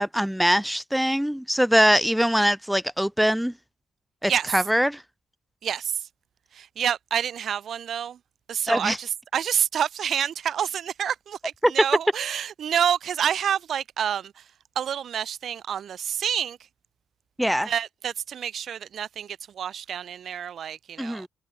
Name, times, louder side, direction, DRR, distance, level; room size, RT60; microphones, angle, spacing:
voice 1, 0.0-3.5 4.2-5.0 8.7-9.0 11.6-11.7 17.4-17.7 21.0-21.3, equal, ahead, 0.9 m, -22 dB
voice 2, 5.6-5.9 6.5-8.2 8.5-14.3 14.8-16.6 17.6-21.3, right 9 dB, 60° right, 1.0 m, -28 dB
cardioid pair, 90°, 0 cm